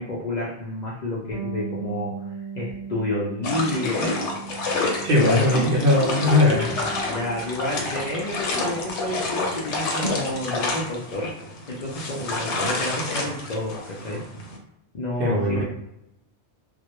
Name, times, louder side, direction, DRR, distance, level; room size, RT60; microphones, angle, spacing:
voice 1, 0.0-4.2 7.0-11.3 11.7-14.2 14.9-15.6, left 1 dB, 60° left, -5 dB, 0.5 m, -30 dB
Bass guitar, 1.3-10.9, right 6 dB, 80° right, 1.0 m, -40 dB
sound 1, 3.4-14.6, left 2 dB, 85° left, 0.9 m, -29 dB
voice 2, 5.0-6.7 15.2-15.6, left 2 dB, 60° right, -2 dB, 0.8 m, -19 dB
sound 2, 6.3-9.7, left 4 dB, 10° left, 0.8 m, -39 dB
2.1 x 2.1 x 2.9 m, 0.84 s
omnidirectional pair, 1.2 m